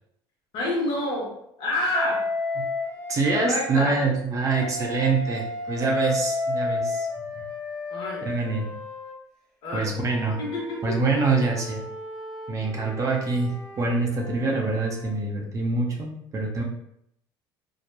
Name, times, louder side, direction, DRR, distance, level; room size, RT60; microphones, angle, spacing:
voice 1, 0.5-2.2 3.3-4.0 7.9-8.3 9.6-9.9 10.4-11.0, left 2 dB, 65° left, -4 dB, 1.1 m, -28 dB
Wind instrument woodwind instrument, 1.9-3.7 4.4-9.2 9.8-15.1, left 2 dB, 5° left, 1.3 m, -33 dB
voice 2, 3.1-7.1 8.2-8.6 9.7-10.4 10.8-11.8 12.5-16.6, right 3 dB, 35° right, 0 dB, 0.6 m, -25 dB
2.8 x 2.3 x 2.2 m, 0.75 s
supercardioid pair, 105°, 10 cm